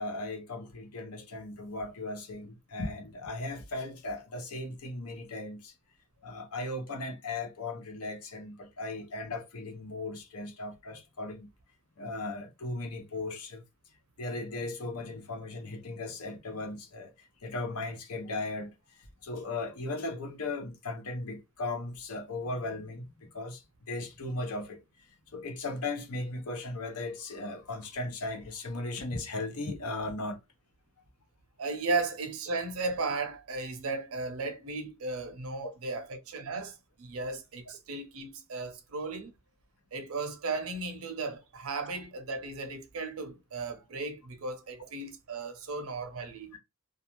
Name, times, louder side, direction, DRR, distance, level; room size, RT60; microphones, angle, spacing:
voice 1, 0.0-5.7 6.2-11.5 12.0-13.6 14.2-18.7 19.0-23.6 23.9-24.8 25.3-30.4 35.9-36.0 44.8-44.9, left 2 dB, 75° left, 0.7 m, -37 dB
voice 2, 31.6-39.3 39.9-46.6, right 3 dB, 65° right, 0.5 m, -35 dB
2.4 x 2.3 x 2.9 m
head